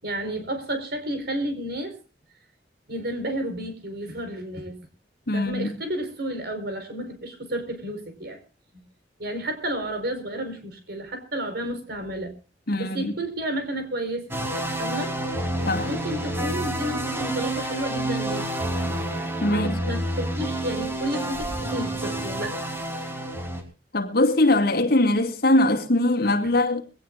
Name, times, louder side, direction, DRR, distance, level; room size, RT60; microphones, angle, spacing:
voice 1, 0.0-2.0 2.9-4.8 5.3-8.4 9.2-12.4 12.8-14.3 14.8-15.2 15.8-18.5 19.5-22.6 23.1-23.2, right 1 dB, 65° right, 4.7 m, -31 dB
voice 2, 5.3-5.7 12.7-13.1 15.7-15.9 19.4-19.7 23.9-26.8, left 1 dB, 60° left, 2.4 m, -21 dB
sound 1, 14.3-23.6, right 1 dB, 15° right, 3.5 m, -29 dB
22.0 x 18.0 x 2.6 m
head